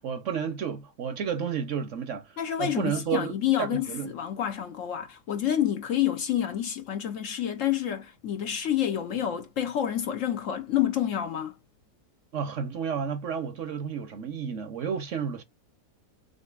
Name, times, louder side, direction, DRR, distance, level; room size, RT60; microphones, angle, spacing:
voice 1, 0.0-3.3 3.6-4.1 12.3-15.4, right 7 dB, 60° right, 0.9 m, -31 dB
voice 2, 2.4-11.6, left 10 dB, 60° left, 0.9 m, -28 dB
6.4 x 2.6 x 2.3 m
omnidirectional pair, 1.7 m